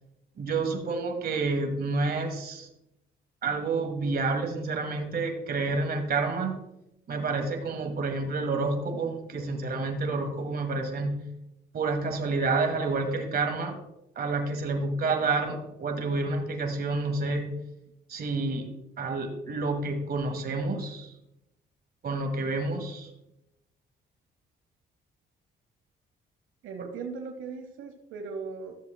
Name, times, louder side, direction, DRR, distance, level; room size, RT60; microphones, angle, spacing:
voice 1, 0.4-2.7 3.4-6.5 7.1-11.3 11.7-13.8 14.1-17.5 18.1-18.7 19.0-21.1 22.0-23.1 26.8-26.9, right 3 dB, 50° right, 4 dB, 1.8 m, -29 dB
voice 2, 26.6-28.8, right 5 dB, 80° right, 4 dB, 0.9 m, -38 dB
14.0 x 7.0 x 2.2 m, 0.89 s
cardioid pair, 90°, 20 cm